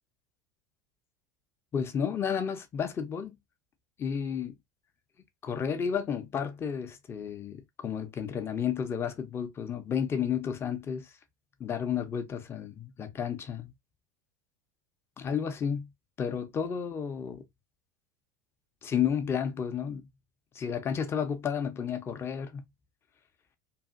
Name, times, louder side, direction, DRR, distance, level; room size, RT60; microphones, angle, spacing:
voice 1, 1.7-3.4 4.0-4.5 5.4-11.1 11.6-13.7 15.2-15.9 16.2-17.4 18.8-20.0 20.5-22.6, left 7 dB, 25° left, 0.6 m, -32 dB
2.6 x 2.4 x 2.4 m
hypercardioid pair, 80°, 10 cm